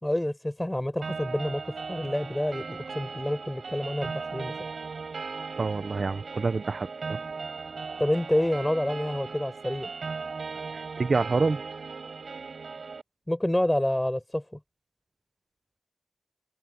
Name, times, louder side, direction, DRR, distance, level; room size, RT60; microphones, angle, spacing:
voice 1, 0.0-4.5 8.0-9.9 13.3-14.6, left 1 dB, 10° left, 5.2 m, -28 dB
sound 1, 1.0-13.0, right 4 dB, 75° right, 6.1 m, -37 dB
voice 2, 5.6-7.2 10.7-11.6, right 4 dB, 60° right, 0.9 m, -27 dB
wide cardioid pair, 85°, 0 cm